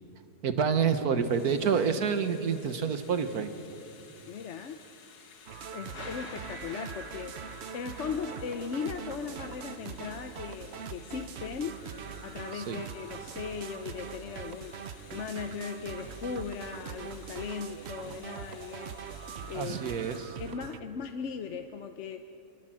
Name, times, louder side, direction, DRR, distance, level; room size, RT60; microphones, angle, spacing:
voice 1, 0.4-3.5 12.5-12.8 19.5-20.4, right 6 dB, 75° right, 9 dB, 1.7 m, -28 dB
Thunder / Rain, 1.1-20.6, left 5 dB, 85° left, 1.9 m, -53 dB
voice 2, 4.3-4.8 5.7-11.8 12.2-19.9 20.4-22.3, left 6 dB, 55° left, 6 dB, 1.0 m, -38 dB
sound 1, 5.5-20.8, right 7 dB, 55° right, 0.8 m, -42 dB
28.0 x 21.0 x 7.7 m, 2.8 s
omnidirectional pair, 1.6 m